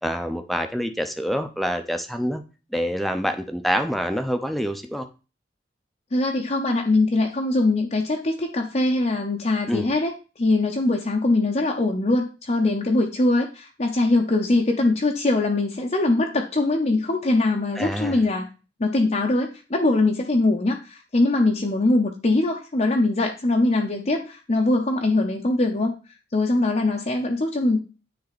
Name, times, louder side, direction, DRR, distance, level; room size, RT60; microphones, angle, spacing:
voice 1, 0.0-2.4 2.7-5.1 9.7-9.9 17.8-18.2, equal, ahead, 7 dB, 0.6 m, -26 dB
voice 2, 6.1-10.1 10.4-18.5 18.8-25.9 26.3-27.8, left 2 dB, 40° left, 1 dB, 0.7 m, -22 dB
9.6 x 3.5 x 4.1 m, 0.33 s
head